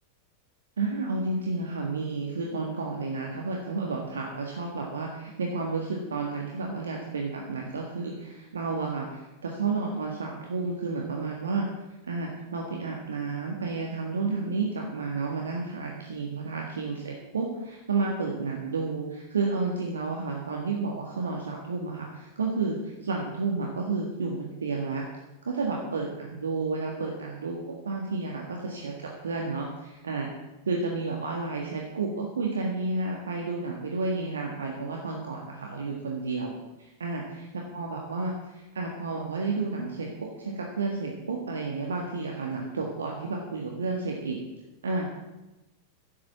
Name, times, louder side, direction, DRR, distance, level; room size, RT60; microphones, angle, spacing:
voice 1, 0.8-11.7 12.0-25.0 25.4-30.3 30.6-37.2 37.5-40.1 40.4-44.4 44.8-45.1, right 3 dB, 70° right, 0 dB, 1.7 m, -31 dB
11.0 x 8.6 x 7.3 m, 1.0 s
figure-of-eight pair, 90°, 0 cm